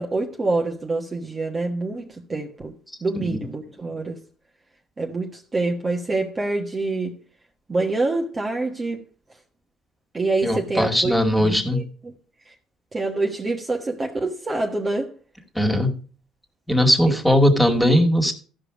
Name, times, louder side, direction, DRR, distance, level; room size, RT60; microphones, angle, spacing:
voice 1, 0.0-2.7 3.0-4.2 5.0-7.2 7.7-9.0 10.1-12.1 12.4-12.5 12.9-15.1 17.1-17.2, right 2 dB, 25° right, 1.4 m, -26 dB
voice 2, 3.1-3.5 10.4-11.9 15.5-15.9 16.7-18.3, equal, 5° left, 2.3 m, -19 dB
14.0 x 5.2 x 5.0 m
supercardioid pair, 75°, 0 cm